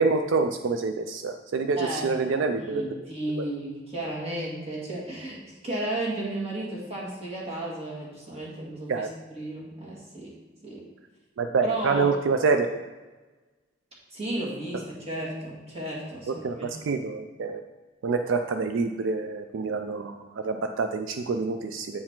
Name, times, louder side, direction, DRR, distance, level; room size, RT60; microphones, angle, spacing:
voice 1, 0.0-2.8 3.4-3.5 8.9-9.1 11.4-12.7 16.4-17.6 18.0-22.0, right 4 dB, 80° right, 7 dB, 0.4 m, -26 dB
voice 2, 1.8-2.3 2.6-10.3 10.6-10.8 11.6-12.1 14.1-16.7, right 1 dB, 30° right, -5 dB, 2.0 m, -33 dB
8.3 x 4.8 x 3.7 m, 1.2 s
head